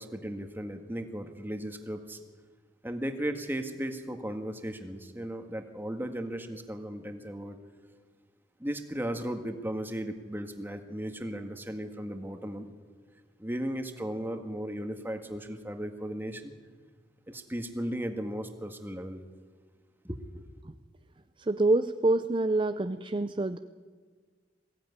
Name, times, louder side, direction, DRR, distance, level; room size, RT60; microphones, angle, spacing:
voice 1, 0.0-2.2 2.8-7.6 8.6-12.7 13.4-16.5 17.3-19.2 20.0-20.4, equal, 10° right, 6 dB, 1.7 m, -36 dB
voice 2, 21.5-23.6, right 2 dB, 30° right, 10 dB, 0.6 m, -26 dB
21.5 x 16.5 x 9.7 m, 1.5 s
head